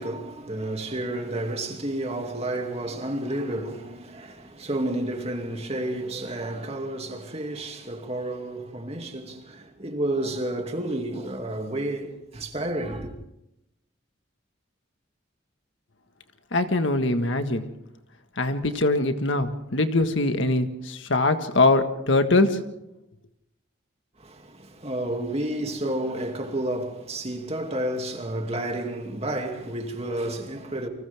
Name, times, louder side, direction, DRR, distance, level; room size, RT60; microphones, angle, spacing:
voice 1, 0.0-13.1 24.2-30.9, right 1 dB, 30° right, 2.6 m, -31 dB
voice 2, 16.5-17.7 18.4-22.6, left 2 dB, 70° left, 1.7 m, -22 dB
29.5 x 25.0 x 3.6 m
head